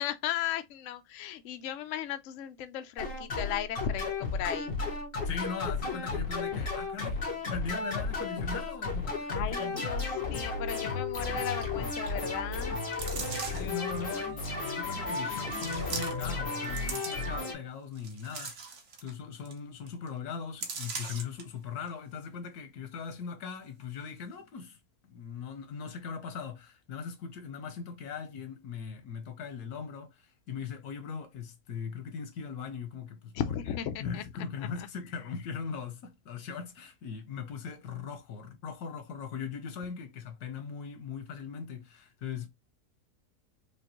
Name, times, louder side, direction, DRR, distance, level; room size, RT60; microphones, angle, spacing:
voice 1, 0.0-4.7 9.3-12.8 33.3-34.2 34.6-34.9, left 10 dB, 70° left, 0.8 m, -36 dB
sound 1, 3.0-17.5, left 3 dB, 45° left, 1.6 m, -33 dB
voice 2, 5.2-10.0 13.5-18.5 19.0-24.8 25.0-33.3 34.0-42.5, left 6 dB, 85° left, 1.4 m, -40 dB
sound 2, 12.9-13.8 14.5-14.6 15.5-16.4 16.6-17.5 17.9-19.1 19.5-19.6 19.9-20.1 20.6-21.4 21.9-22.0, right 5 dB, 55° right, 1.1 m, -39 dB
5.1 x 2.3 x 2.9 m
omnidirectional pair, 1.6 m